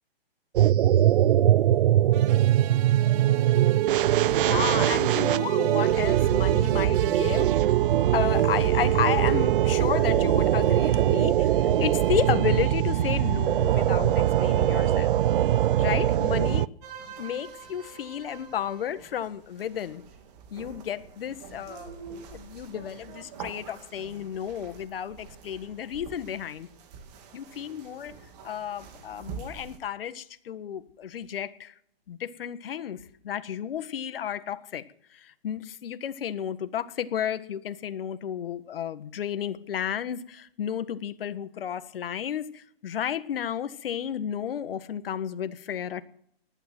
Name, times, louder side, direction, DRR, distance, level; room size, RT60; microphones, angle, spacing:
sound 1, 0.6-16.7, right 12 dB, 60° right, 0.6 m, -22 dB
sound 2, 2.1-7.6, right 15 dB, 25° right, 1.0 m, -41 dB
voice 1, 4.2-7.6 8.1-15.2 15.8-16.6 17.2-20.0 20.5-26.7 27.3-28.1 28.4-31.7 32.1-33.0 33.2-34.8 35.1-46.0, left 9 dB, 65° left, 1.6 m, -32 dB
sound 3, 16.8-29.8, right 6 dB, 40° right, 3.0 m, -45 dB
19.5 x 12.0 x 6.1 m
hypercardioid pair, 140°, 31 cm